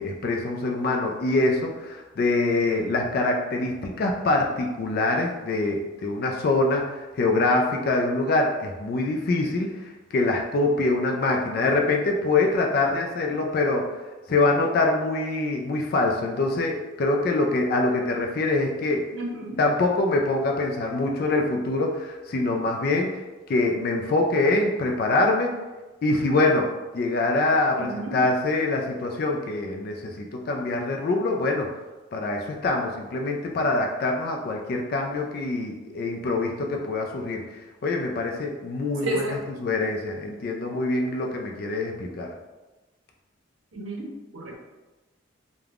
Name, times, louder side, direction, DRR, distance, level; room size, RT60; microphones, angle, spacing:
voice 1, 0.0-14.0 14.3-19.1 19.6-25.5 26.0-26.7 26.9-31.7 32.1-39.2 39.6-42.3, left 2 dB, 50° left, 1 dB, 0.3 m, -24 dB
voice 2, 19.1-19.7 27.8-28.2 39.0-39.4 43.7-44.5, right 2 dB, 80° right, 0 dB, 0.6 m, -32 dB
3.3 x 2.2 x 2.4 m, 1.2 s
head